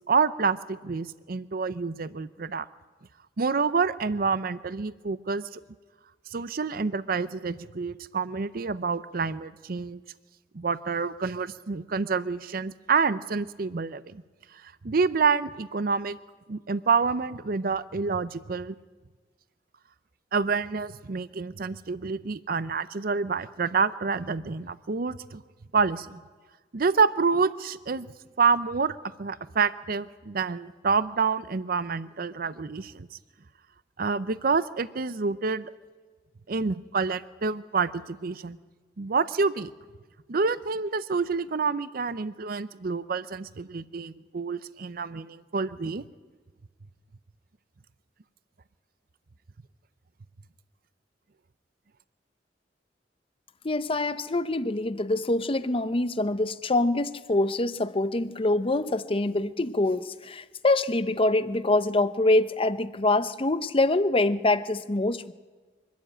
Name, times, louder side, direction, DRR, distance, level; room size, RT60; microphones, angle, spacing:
voice 1, 0.1-2.7 3.4-5.6 6.3-10.0 10.5-14.2 14.5-16.2 16.5-18.7 20.3-25.4 25.7-26.2 26.7-28.1 28.4-33.1 34.0-35.7 36.5-38.6 39.0-39.7 40.3-46.0, right 5 dB, 55° right, 15 dB, 0.6 m, -28 dB
voice 2, 53.6-65.3, left 2 dB, 30° left, 13 dB, 0.7 m, -25 dB
24.0 x 12.5 x 8.8 m, 1.4 s
head